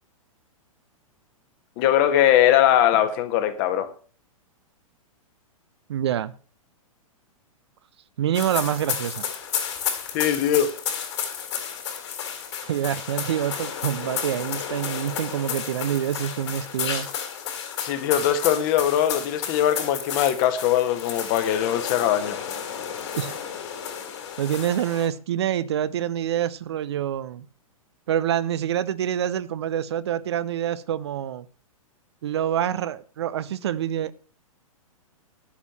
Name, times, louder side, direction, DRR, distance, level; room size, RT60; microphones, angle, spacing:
voice 1, 1.8-3.9 10.1-10.7 17.8-22.4, left 11 dB, 35° left, 1.6 m, -21 dB
voice 2, 5.9-6.3 8.2-9.2 12.6-17.1 23.2-23.4 24.4-27.4 28.1-31.5 32.2-34.1, right 10 dB, 50° right, 0.6 m, -26 dB
sound 1, 8.3-25.1, left 8 dB, 50° left, 3.8 m, -32 dB
11.5 x 7.0 x 7.4 m
figure-of-eight pair, 105°, 18 cm